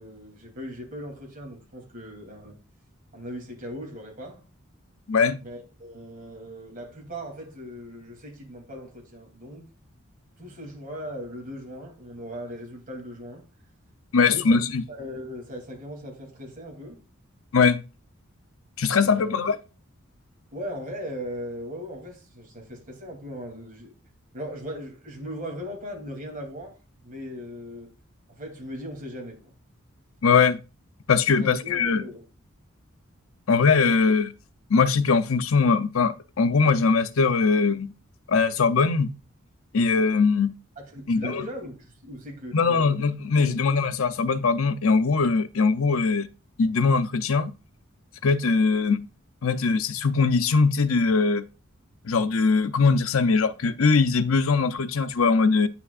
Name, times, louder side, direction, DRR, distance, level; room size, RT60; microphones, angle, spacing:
voice 1, 0.0-2.6 3.1-4.4 5.4-9.7 10.4-13.4 14.3-14.6 14.9-17.0 19.0-19.4 20.5-23.9 24.3-27.9 28.3-29.5 31.3-32.2 33.8-33.9 40.8-43.0 43.4-43.5, equal, 40° right, 2.9 m, -38 dB
voice 2, 5.1-5.4 14.1-14.8 17.5-17.8 18.8-19.6 30.2-30.6 31.1-32.0 33.5-34.3 34.7-37.9 38.3-39.1 39.7-40.5 41.1-41.5 42.5-46.3 46.6-47.5 48.2-49.0 49.4-51.4 52.0-55.7, left 4 dB, 80° left, 0.6 m, -21 dB
9.5 x 6.9 x 2.4 m
head